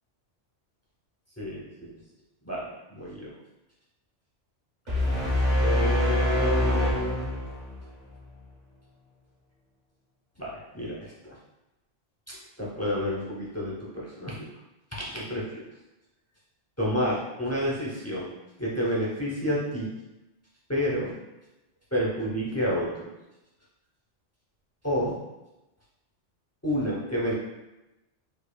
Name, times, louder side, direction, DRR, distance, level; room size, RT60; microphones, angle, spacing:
voice 1, 1.4-1.9 2.4-2.6 2.9-3.3 5.4-7.4 10.4-11.4 12.3-14.5 15.1-15.6 16.8-18.3 18.6-19.9 20.7-21.1 21.9-23.1 24.8-25.2 26.6-27.3, equal, 20° left, -5 dB, 0.4 m, -29 dB
sound 1, 4.9-8.2, left 1 dB, 40° right, 1.0 m, -25 dB
4.7 x 2.5 x 2.2 m, 0.99 s
omnidirectional pair, 1.2 m